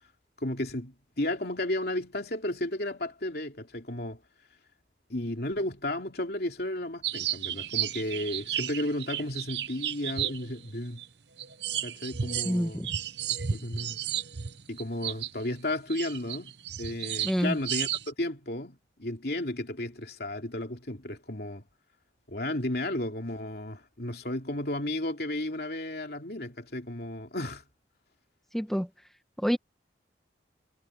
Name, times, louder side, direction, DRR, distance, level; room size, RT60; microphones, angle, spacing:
voice 1, 0.4-4.2 5.1-11.0 11.8-12.9 13.3-14.0 14.7-21.7 22.3-27.6, left 1 dB, 55° left, 3.1 m, -33 dB
sound 1, 7.0-11.1 11.4-15.4 15.9-18.1, right 10 dB, 70° right, 0.9 m, -33 dB
voice 2, 12.4-12.9 17.2-17.6 28.5-28.9 29.4-29.6, equal, ahead, 1.4 m, -27 dB
head